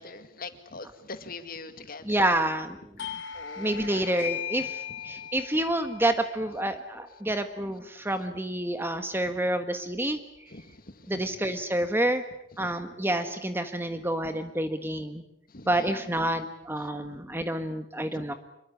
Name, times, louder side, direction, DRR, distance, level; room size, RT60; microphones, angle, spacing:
voice 1, 0.0-2.2 3.3-4.0 5.1-5.3 10.5-11.3 12.6-12.8 13.9-14.0 15.5-16.1 17.0-17.2 18.1-18.3, left 3 dB, 50° left, 9 dB, 2.2 m, -43 dB
voice 2, 2.0-2.8 3.6-10.2 11.1-12.2 12.6-15.2 15.7-18.3, right 1 dB, 10° right, 8 dB, 1.4 m, -28 dB
Doorbell, 3.0-8.3, left 9 dB, 80° left, 3.1 m, -39 dB
26.0 x 22.5 x 8.6 m, 0.74 s
head